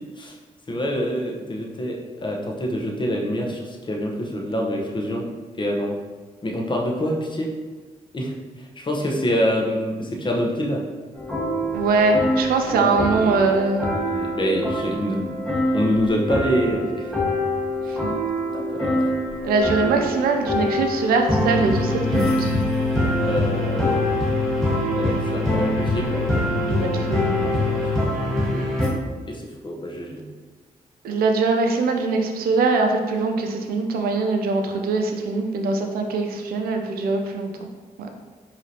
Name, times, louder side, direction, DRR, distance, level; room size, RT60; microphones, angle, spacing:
voice 1, 0.7-5.3 5.6-5.9 6.4-7.5 8.1-10.8 12.7-13.3 14.1-15.3 15.7-17.1 17.9-18.0 18.5-19.1 23.2-24.3 24.9-26.2 27.4-28.7 29.3-30.3, equal, 30° left, 0 dB, 0.9 m, -26 dB
sound 1, 11.1-28.9, left 1 dB, 5° left, 1.4 m, -24 dB
voice 2, 11.7-13.9 17.9-18.1 19.4-22.7 26.7-27.5 31.0-37.5 38.0-38.1, right 3 dB, 85° right, 4 dB, 0.5 m, -22 dB
4.9 x 2.8 x 2.8 m, 1.4 s
cardioid pair, 65°, 15 cm